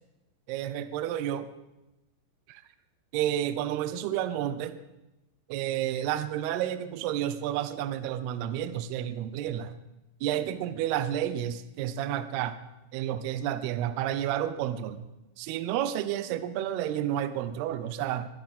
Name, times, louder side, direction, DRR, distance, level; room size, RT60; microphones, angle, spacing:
voice 1, 0.5-1.5 2.5-2.6 3.1-4.7 5.5-9.8 10.2-12.6 12.9-15.1 15.4-18.3, right 11 dB, 80° right, 12 dB, 2.3 m, -30 dB
22.0 x 11.0 x 5.5 m, 0.99 s
omnidirectional pair, 5.6 m